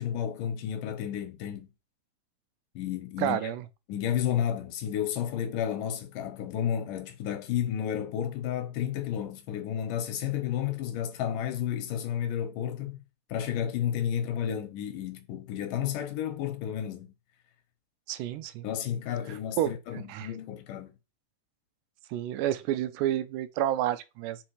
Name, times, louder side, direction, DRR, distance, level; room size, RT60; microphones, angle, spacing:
voice 1, 0.0-1.7 2.8-3.5 3.9-13.0 13.3-17.1 18.6-20.9, left 10 dB, 85° left, 2.7 m, -32 dB
voice 2, 3.2-3.6 18.1-18.7 19.6-19.7 20.1-20.3 22.1-24.4, right 12 dB, 85° right, 2.1 m, -29 dB
7.0 x 4.3 x 4.9 m
omnidirectional pair, 3.7 m